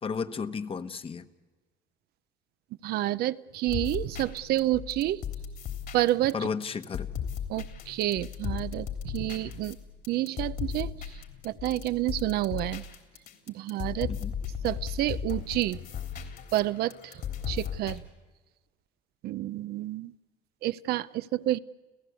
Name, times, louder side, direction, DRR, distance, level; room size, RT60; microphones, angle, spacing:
voice 1, 0.0-1.3 6.3-7.1 14.1-14.3, left 5 dB, 35° left, 10 dB, 1.2 m, -33 dB
voice 2, 2.8-5.2 5.9-6.4 7.5-9.8 10.1-10.9 11.4-12.8 13.5-14.1 14.6-15.8 16.5-17.2 17.5-18.0 19.2-20.1 20.6-21.6, right 15 dB, 65° right, 15 dB, 0.7 m, -29 dB
sound 1, 3.7-18.0, left 8 dB, 60° left, 3.6 m, -36 dB
29.5 x 15.5 x 8.4 m, 1.3 s
cardioid pair, 110°, 17 cm